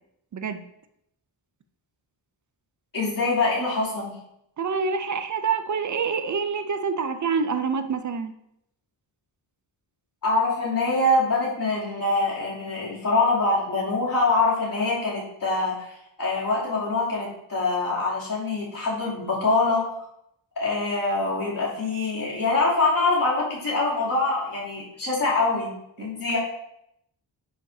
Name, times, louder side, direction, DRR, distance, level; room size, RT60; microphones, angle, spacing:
voice 1, 0.3-0.6 4.6-8.3 26.0-26.1, right 5 dB, 40° right, 9 dB, 0.5 m, -26 dB
voice 2, 2.9-4.2 10.2-19.8 20.6-25.7 26.0-26.4, left 3 dB, 45° left, -7 dB, 2.8 m, -24 dB
9.5 x 5.6 x 2.7 m, 0.77 s
wide cardioid pair, 170°, 47 cm